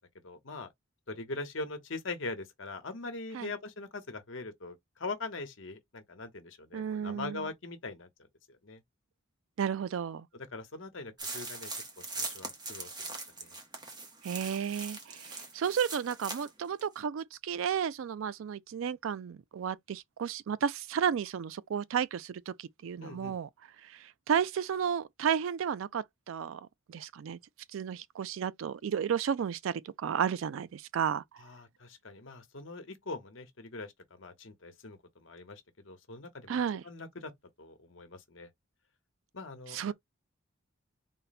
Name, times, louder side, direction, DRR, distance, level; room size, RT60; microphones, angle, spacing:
voice 1, 0.2-0.7 1.1-8.1 8.6-8.8 10.3-11.7 12.0-13.6 23.0-23.4 31.4-37.3 37.6-38.5 39.3-39.9, left 3 dB, 65° left, 1.0 m, -42 dB
voice 2, 6.7-7.4 9.6-10.3 14.2-23.5 23.8-26.6 26.9-27.4 27.7-31.2 36.5-36.8 39.7-39.9, right 8 dB, 70° right, 0.3 m, -33 dB
sound 1, 11.2-16.5 16.8-16.9, right 3 dB, 20° right, 0.8 m, -41 dB
4.0 x 2.1 x 4.1 m
head